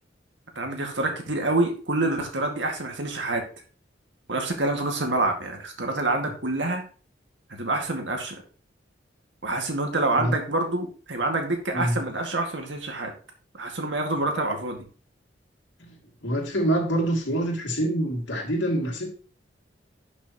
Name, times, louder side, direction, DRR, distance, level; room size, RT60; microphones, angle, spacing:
voice 1, 0.6-3.4 4.3-6.8 7.5-8.4 9.4-13.1 13.5-14.9, right 2 dB, 85° right, 3 dB, 2.1 m, -27 dB
voice 2, 16.2-19.1, right 1 dB, 90° left, 1 dB, 2.6 m, -26 dB
11.5 x 6.1 x 3.1 m, 0.38 s
head